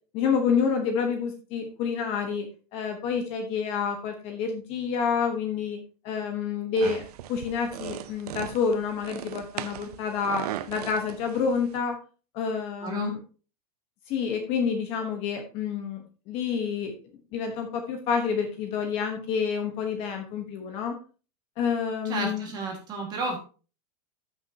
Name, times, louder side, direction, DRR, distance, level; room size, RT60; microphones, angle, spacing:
voice 1, 0.1-5.8 6.0-7.0 7.3-12.0 12.3-13.2 14.1-16.9 17.3-21.0 21.6-22.5, left 6 dB, 30° left, 4 dB, 1.1 m, -28 dB
sound 1, 6.8-11.8, right 12 dB, 75° right, 0.7 m, -38 dB
voice 2, 12.8-13.1 22.0-23.4, right 3 dB, 20° right, 1 dB, 1.8 m, -32 dB
13.5 x 6.1 x 2.8 m, 0.36 s
supercardioid pair, 175°, 20 cm